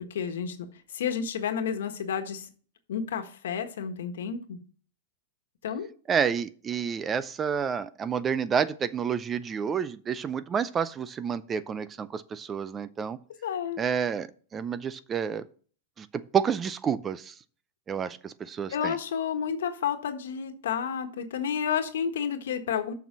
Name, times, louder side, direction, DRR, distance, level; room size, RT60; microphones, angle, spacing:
voice 1, 0.1-0.6 0.9-2.5 2.9-4.6 5.6-5.9 13.4-13.8 18.7-22.9, left 7 dB, 85° left, 7 dB, 1.4 m, -30 dB
voice 2, 6.1-13.2 13.8-15.4 16.0-17.3 17.9-19.0, right 7 dB, 20° right, 16 dB, 0.5 m, -29 dB
6.8 x 6.2 x 6.1 m, 0.43 s
hypercardioid pair, 135°, 0 cm